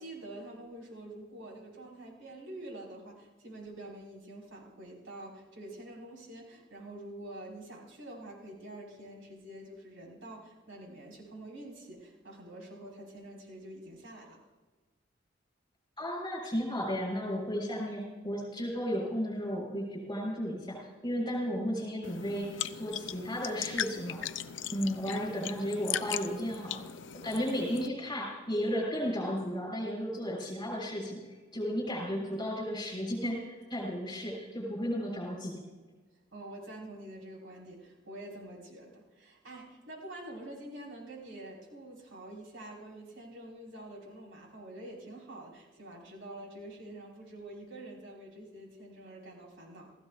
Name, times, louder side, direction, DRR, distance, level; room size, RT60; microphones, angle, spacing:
voice 1, 0.0-14.4 36.3-49.9, right 1 dB, 80° right, -2 dB, 5.4 m, -46 dB
voice 2, 16.0-20.8 21.0-24.2 24.7-26.8 27.2-31.2 31.5-35.6, equal, 25° left, -1 dB, 6.2 m, -34 dB
sound 1, 22.0-27.9, left 9 dB, 75° left, 0.6 m, -38 dB
29.0 x 16.0 x 2.7 m, 1.3 s
head